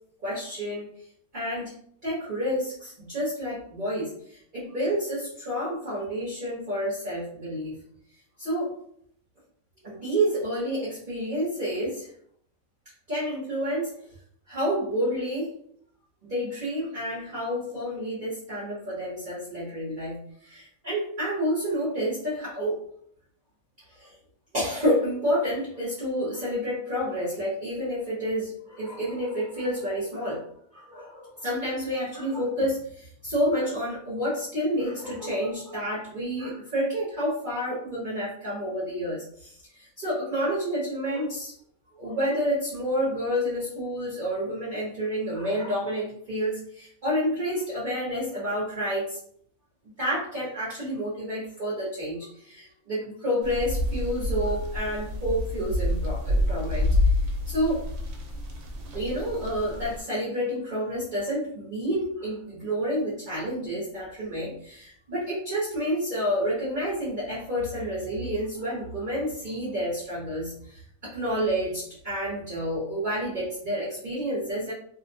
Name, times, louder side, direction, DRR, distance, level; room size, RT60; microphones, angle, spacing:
voice 1, 0.2-0.9 1.3-1.8 2.0-7.8 8.4-8.7 9.8-12.1 13.1-13.9 14.5-15.5 16.2-22.8 23.9-24.2 24.5-30.4 30.7-41.5 42.0-49.2 50.0-57.0 57.5-57.8 58.9-74.7, equal, 40° right, -8 dB, 0.8 m, -29 dB
sound 1, 53.4-60.0, left 1 dB, 75° right, 1.0 m, -28 dB
2.5 x 2.1 x 2.6 m, 0.64 s
omnidirectional pair, 1.5 m